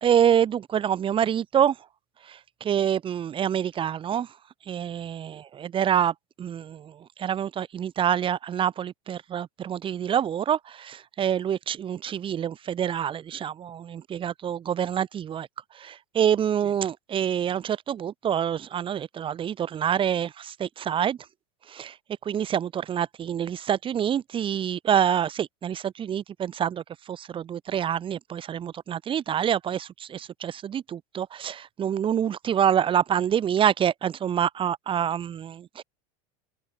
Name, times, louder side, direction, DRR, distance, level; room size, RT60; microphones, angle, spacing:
voice 1, 0.0-1.7 2.3-4.3 4.7-5.3 5.6-6.9 7.2-15.5 15.8-21.2 21.7-21.9 22.2-35.8, right 9 dB, 25° right, 0.8 m, -26 dB
supercardioid pair, 115°, 19 cm